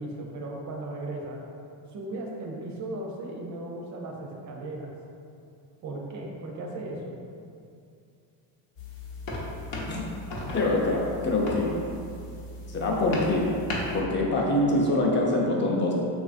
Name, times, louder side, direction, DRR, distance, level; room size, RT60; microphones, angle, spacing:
voice 1, 0.0-1.4 1.9-4.9 5.8-7.1, right 2 dB, 40° right, 0 dB, 0.4 m, -36 dB
sound 1, 8.8-14.0, left 1 dB, 65° left, 0.8 m, -36 dB
voice 2, 10.5-11.7 12.7-13.6 13.9-15.9, left 2 dB, 25° left, -2 dB, 0.4 m, -24 dB
3.1 x 2.4 x 2.4 m, 2.5 s
supercardioid pair, 95°, 50 cm